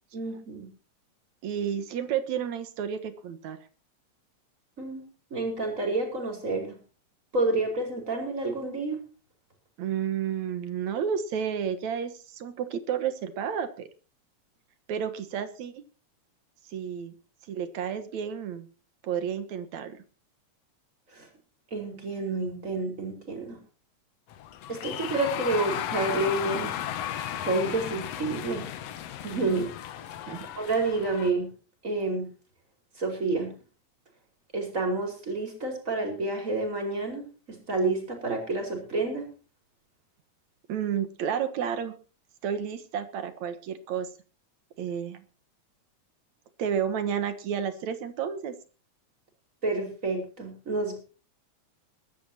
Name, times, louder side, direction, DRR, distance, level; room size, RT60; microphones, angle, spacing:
voice 1, 0.1-0.7 4.8-5.0 5.3-6.8 7.3-9.0 21.1-21.3 21.7-23.6 24.7-27.2 27.4-28.7 29.2-29.7 30.6-31.5 31.8-32.3 33.0-33.6 34.5-39.3 49.6-51.0, right 2 dB, 25° right, 3 dB, 5.2 m, -29 dB
voice 2, 1.4-3.6 9.8-13.9 14.9-15.8 16.7-17.2 17.5-18.7 19.0-20.0 30.3-30.5 40.7-41.9 42.4-44.1 44.8-45.2 46.6-48.5, right 8 dB, 70° right, 11 dB, 2.7 m, -31 dB
sound 1, 24.3-31.3, left 11 dB, 65° left, 2.0 m, -35 dB
21.5 x 13.5 x 2.9 m, 0.36 s
omnidirectional pair, 3.3 m